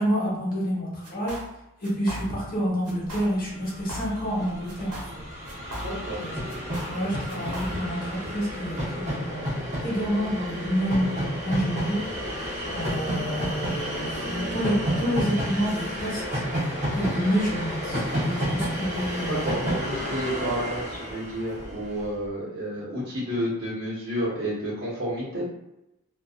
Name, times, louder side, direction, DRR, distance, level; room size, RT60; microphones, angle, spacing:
voice 1, 0.0-1.4 1.8-5.2 6.2-6.4 6.9-9.5 9.8-12.0 12.7-16.4 16.9-19.5, equal, 40° left, -5 dB, 1.0 m, -28 dB
sound 1, 1.0-1.6 1.8-2.6 2.8-3.4 3.6-4.4 4.7-6.2 6.5-8.0, equal, 85° right, 0.9 m, -38 dB
Train, 3.4-3.5 3.7-22.1, equal, 30° right, 0.6 m, -31 dB
voice 2, 5.8-6.2 19.3-25.4, equal, 55° right, -7 dB, 0.9 m, -31 dB
2.5 x 2.2 x 2.4 m, 0.90 s
head